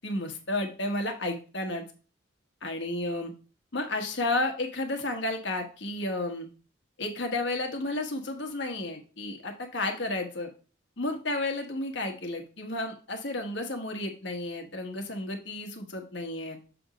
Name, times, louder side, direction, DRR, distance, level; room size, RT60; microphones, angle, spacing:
voice 1, 0.0-1.8 2.6-3.3 3.7-6.5 7.0-10.5 11.0-16.6, left 2 dB, 60° left, 4 dB, 1.3 m, -32 dB
7.0 x 3.5 x 5.0 m, 0.37 s
head